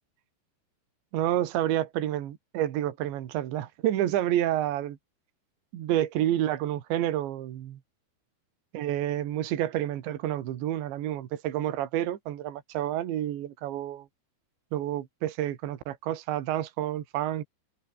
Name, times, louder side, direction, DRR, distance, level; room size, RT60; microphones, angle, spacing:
voice 1, 1.1-5.0 5.7-7.8 8.7-14.1 14.7-17.4, right 12 dB, 75° right, 4.1 m, -29 dB
omnidirectional pair, 5.2 m